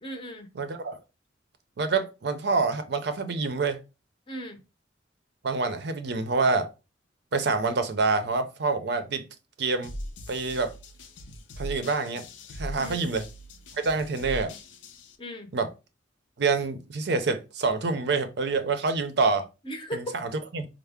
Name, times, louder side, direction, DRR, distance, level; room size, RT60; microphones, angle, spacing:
voice 1, 0.0-0.5 4.3-4.6 12.8-13.1 15.2-15.5 19.6-20.2, equal, 25° left, 0.6 m, -37 dB
voice 2, 0.6-1.0 1.8-3.8 5.4-6.7 7.3-9.2 9.6-9.9 10.3-10.7 11.6-12.2 12.6-13.2 13.7-14.5 15.5-15.7 16.4-19.5 19.9-20.7, right 4 dB, 60° right, 0.5 m, -26 dB
sound 1, 9.8-15.2, left 1 dB, 80° left, 0.6 m, -40 dB
4.4 x 2.0 x 3.4 m
head